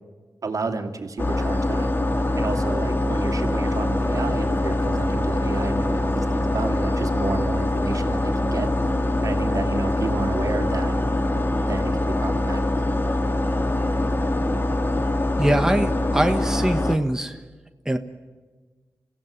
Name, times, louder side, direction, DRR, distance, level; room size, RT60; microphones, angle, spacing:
voice 1, 0.4-1.9 2.4-8.7 9.2-10.9 11.6-12.7, right 4 dB, 60° right, 4 dB, 2.7 m, -31 dB
sound 1, 1.2-17.0, left 1 dB, 30° left, 2.0 m, -23 dB
voice 2, 15.4-17.4 17.8-18.0, right 1 dB, 10° right, 6 dB, 1.2 m, -22 dB
27.0 x 16.5 x 9.9 m, 1.4 s
cardioid pair, 75°, 7 cm